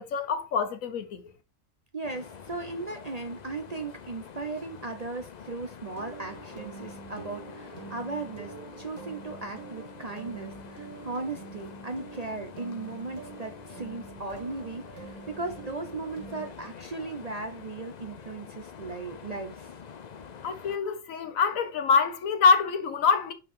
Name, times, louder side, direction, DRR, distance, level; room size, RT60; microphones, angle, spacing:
voice 1, 0.0-1.3 20.4-23.3, left 5 dB, 75° left, 1.4 m, -25 dB
voice 2, 1.9-19.7, right 3 dB, 35° right, 0.7 m, -37 dB
sound 1, 2.0-20.8, left 6 dB, 50° left, 0.5 m, -46 dB
sound 2, 5.9-16.5, right 5 dB, 75° right, 1.6 m, -46 dB
5.7 x 5.3 x 4.5 m
omnidirectional pair, 1.4 m